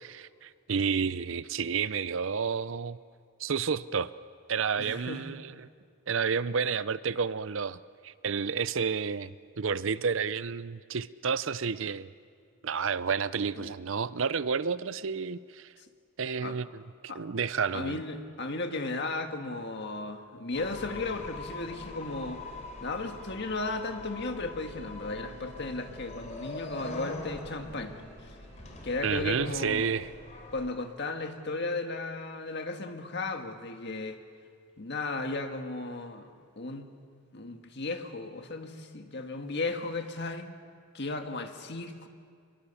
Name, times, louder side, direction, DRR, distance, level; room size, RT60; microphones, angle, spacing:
voice 1, 0.0-3.0 3.4-4.1 4.5-5.7 6.1-12.1 12.6-15.7 16.2-18.0 29.0-30.1, right 6 dB, 65° right, 16 dB, 0.6 m, -31 dB
voice 2, 4.8-5.2 13.6-13.7 16.4-16.6 17.1-17.2 17.7-22.5 22.8-28.3 28.8-29.9 30.5-34.2 34.8-36.9 37.3-40.5 40.9-42.1, left 3 dB, 55° left, 5 dB, 1.8 m, -35 dB
sound 1, 20.5-30.7, left 2 dB, 35° left, 3.4 m, -43 dB
sound 2, 23.9-29.7, right 1 dB, 90° right, 3.1 m, -54 dB
25.0 x 22.5 x 7.1 m, 2.2 s
head